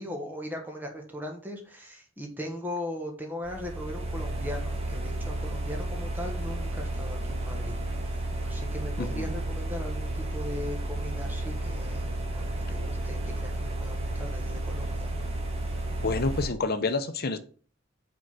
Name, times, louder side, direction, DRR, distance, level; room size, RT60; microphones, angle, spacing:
voice 1, 0.0-15.1, left 1 dB, 10° right, 1.4 m, -39 dB
sound 1, 3.4-16.5, right 1 dB, 30° right, 1.3 m, -32 dB
voice 2, 9.0-9.3 16.0-17.4, left 3 dB, 50° left, 0.8 m, -28 dB
5.2 x 4.6 x 6.1 m
head